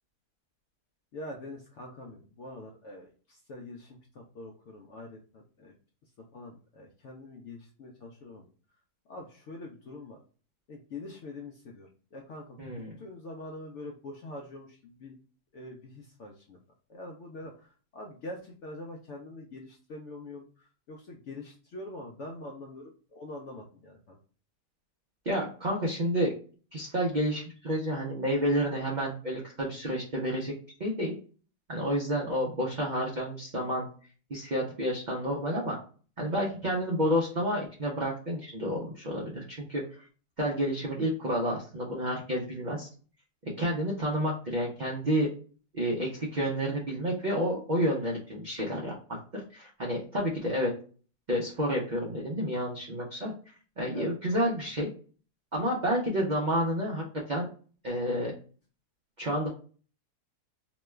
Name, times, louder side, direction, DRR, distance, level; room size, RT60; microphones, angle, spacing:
voice 1, 1.1-5.7 6.3-8.5 9.1-10.2 10.7-15.2 15.5-16.6 16.9-24.2 53.9-54.1, left 2 dB, 70° left, 1 dB, 0.7 m, -44 dB
voice 2, 12.6-12.9 25.3-26.3 26.7-30.5 30.8-31.1 31.7-33.9 34.3-35.8 36.2-39.8 40.4-42.9 43.6-45.3 45.7-48.9 49.3-50.7 51.3-53.3 53.8-54.9 55.5-57.5 57.8-58.3 59.2-59.5, equal, 70° right, -3 dB, 0.4 m, -30 dB
2.9 x 2.2 x 3.1 m, 0.40 s
omnidirectional pair, 1.7 m